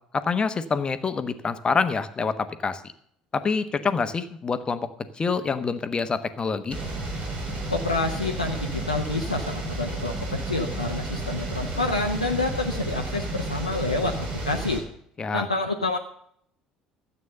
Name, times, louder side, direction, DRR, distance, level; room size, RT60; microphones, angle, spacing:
voice 1, 0.1-2.8 3.3-4.9 5.2-6.8 15.2-15.5, left 5 dB, 25° left, 11 dB, 1.2 m, -26 dB
sound 1, 6.7-14.8, right 2 dB, 45° right, 4.3 m, -32 dB
voice 2, 7.7-14.8 15.3-16.0, left 2 dB, 85° left, 3 dB, 0.8 m, -28 dB
13.0 x 8.3 x 6.6 m, 0.66 s
figure-of-eight pair, 60°, 3 cm